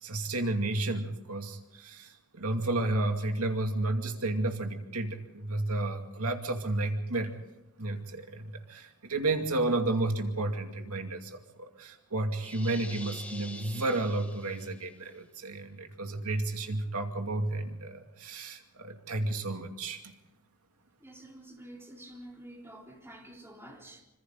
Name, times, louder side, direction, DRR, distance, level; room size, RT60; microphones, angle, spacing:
voice 1, 0.0-7.3 7.8-20.1, right 2 dB, 75° right, 2.5 m, -32 dB
sound 1, 12.4-14.9, left 2 dB, 5° left, 1.7 m, -46 dB
voice 2, 21.0-24.0, right 1 dB, 10° right, 3.8 m, -48 dB
26.0 x 26.0 x 3.9 m
head